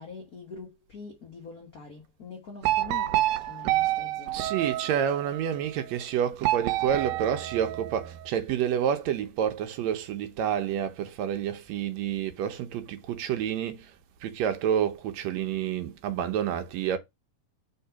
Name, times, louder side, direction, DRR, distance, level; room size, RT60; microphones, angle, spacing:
voice 1, 0.0-4.5, left 4 dB, 80° left, 0.8 m, -44 dB
sound 1, 2.6-5.3 6.4-8.2, right 15 dB, 90° right, 2.1 m, -28 dB
voice 2, 4.3-13.9 14.2-17.0, right 9 dB, 70° right, 1.8 m, -29 dB
4.5 x 3.8 x 5.6 m
omnidirectional pair, 3.6 m